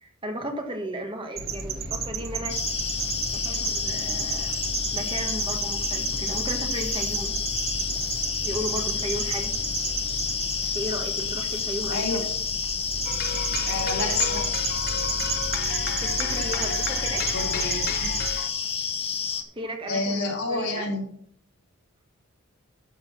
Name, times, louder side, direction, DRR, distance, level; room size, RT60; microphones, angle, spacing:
voice 1, 0.0-2.6 3.3-4.6 4.9-7.4 8.4-9.6 10.7-12.2 16.0-17.4 19.5-20.8, equal, 25° right, 3 dB, 1.6 m, -35 dB
sound 1, 1.4-18.3, right 5 dB, 45° right, 1.3 m, -32 dB
sound 2, 2.5-19.4, left 6 dB, 25° left, 1.1 m, -30 dB
voice 2, 11.9-12.2 13.7-14.4 17.3-18.1 19.9-21.0, left 3 dB, 70° left, -2 dB, 3.8 m, -28 dB
sound 3, 13.0-18.5, left 7 dB, 40° left, 0.7 m, -34 dB
12.5 x 6.3 x 6.0 m, 0.64 s
head